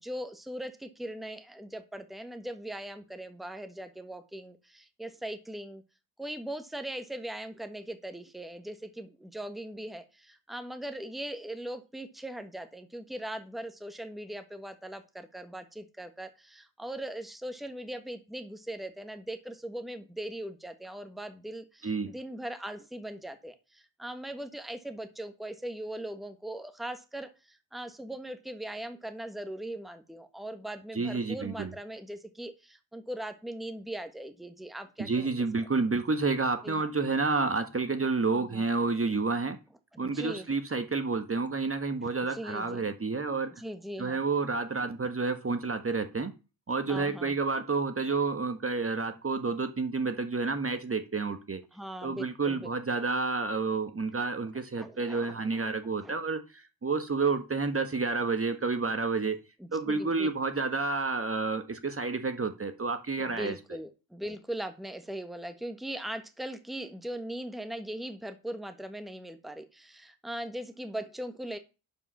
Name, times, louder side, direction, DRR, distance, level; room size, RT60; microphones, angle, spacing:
voice 1, 0.0-5.8 6.2-35.3 36.6-36.9 38.3-38.7 39.9-40.5 42.0-42.9 43.6-44.2 46.9-47.3 51.7-52.7 54.7-55.7 56.0-56.1 59.6-60.3 63.2-71.6, right 1 dB, ahead, 9 dB, 1.5 m, -40 dB
voice 2, 30.9-31.7 35.0-39.6 40.0-43.5 44.0-46.3 46.7-51.6 52.0-56.4 56.8-59.4 59.7-63.5, right 4 dB, 25° right, 9 dB, 1.4 m, -30 dB
11.0 x 5.2 x 5.7 m, 0.31 s
supercardioid pair, 60°, 50 cm